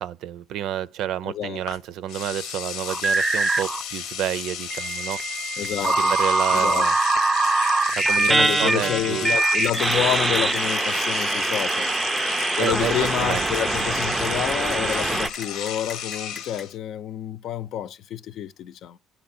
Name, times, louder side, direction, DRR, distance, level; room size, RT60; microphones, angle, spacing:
voice 1, 0.0-5.2 5.8-6.9 8.0-9.3 12.6-13.5, right 11 dB, 75° right, 0.6 m, -30 dB
voice 2, 1.2-1.6 5.6-6.1 6.5-6.9 8.2-11.9 12.6-19.0, left 11 dB, 70° left, 0.6 m, -29 dB
Engine / Domestic sounds home sounds, 1.7-1.8 2.1-16.7, left 8 dB, 90° left, 1.0 m, -34 dB
sound 1, 2.9-3.8 4.7-15.3, right 3 dB, 20° right, 0.4 m, -23 dB
sound 2, 9.4-16.7, left 4 dB, 30° left, 0.7 m, -39 dB
10.0 x 5.5 x 4.2 m
cardioid pair, 100°, 0 cm